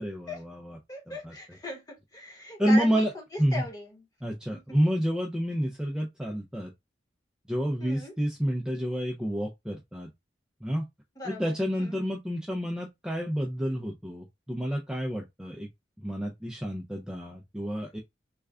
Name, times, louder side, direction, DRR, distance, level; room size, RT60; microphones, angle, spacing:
voice 1, 0.0-0.8 1.1-1.3 2.6-3.1 3.4-3.6 4.2-6.7 7.5-10.1 10.6-10.8 11.2-15.7 16.0-18.0, equal, 5° right, 0.4 m, -29 dB
voice 2, 0.9-3.1 3.5-4.0 4.5-4.6 7.8-8.1 11.2-12.0, left 2 dB, 20° left, 1.0 m, -38 dB
3.3 x 2.3 x 3.5 m
head